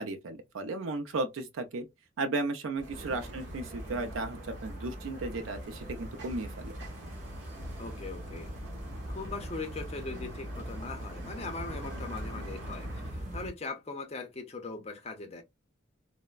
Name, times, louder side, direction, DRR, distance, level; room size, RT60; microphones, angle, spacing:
voice 1, 0.0-1.9 2.2-6.7, right 2 dB, 80° right, 0.4 m, -35 dB
sound 1, 2.8-13.1, right 1 dB, 60° right, 1.1 m, -46 dB
sound 2, 2.9-13.5, equal, 35° right, 0.9 m, -42 dB
voice 2, 7.8-8.5 9.1-15.4, left 3 dB, 30° left, 0.5 m, -40 dB
3.2 x 2.0 x 2.2 m
head